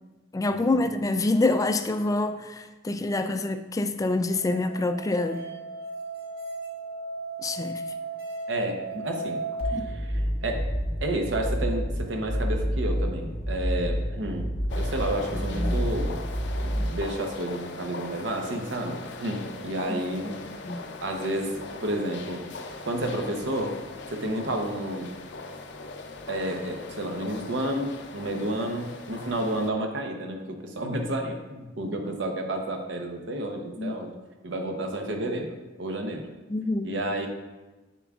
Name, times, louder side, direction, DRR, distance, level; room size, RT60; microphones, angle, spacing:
voice 1, 0.3-5.4 7.4-7.8 9.7-9.9 15.3-15.8 19.9-20.0 20.6-20.8 33.8-34.0 36.5-36.9, left 2 dB, 20° left, 9 dB, 0.3 m, -26 dB
Musical instrument, 3.9-9.6, right 3 dB, 55° right, 1.8 m, -36 dB
voice 2, 8.5-10.7 11.0-14.5 14.8-16.2 16.6-20.4 21.0-21.5 21.8-22.4 22.8-23.8 24.1-25.1 26.3-34.1 34.4-36.3 36.8-37.3, right 1 dB, 80° right, 3 dB, 0.8 m, -31 dB
sound 1, 9.6-17.0, equal, 35° left, 0.7 m, -29 dB
sound 2, 14.7-29.7, left 3 dB, 65° left, 0.6 m, -40 dB
7.3 x 6.9 x 2.4 m, 1.2 s
head